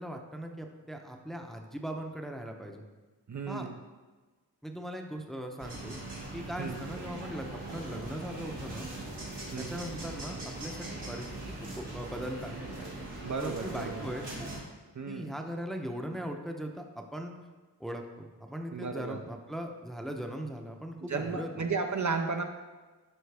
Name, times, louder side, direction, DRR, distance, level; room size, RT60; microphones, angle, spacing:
voice 1, 0.0-2.8 3.5-3.7 4.6-6.0 6.3-8.9 9.6-11.3 11.6-13.1 13.4-14.5 15.1-17.3 17.8-21.5, equal, ahead, 3 dB, 0.7 m, -39 dB
voice 2, 3.3-3.8 6.6-6.8 9.5-9.8 13.2-14.1 15.0-15.3 18.7-19.2 21.1-22.4, right 4 dB, 45° right, 5 dB, 0.6 m, -34 dB
sound 1, 5.6-14.6, right 2 dB, 90° right, 2.1 m, -41 dB
11.5 x 5.2 x 3.4 m, 1.3 s
wide cardioid pair, 90°, 40 cm